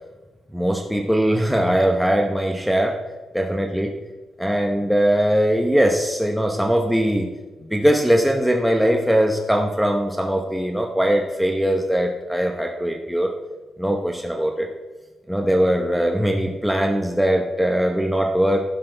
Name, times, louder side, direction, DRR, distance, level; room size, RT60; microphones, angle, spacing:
voice 1, 0.5-3.0 3.3-3.9 4.4-7.3 7.7-13.3 13.8-14.7 15.3-18.6, equal, ahead, 2 dB, 0.8 m, -20 dB
11.5 x 10.5 x 3.3 m, 1.2 s
wide cardioid pair, 145°, 0 cm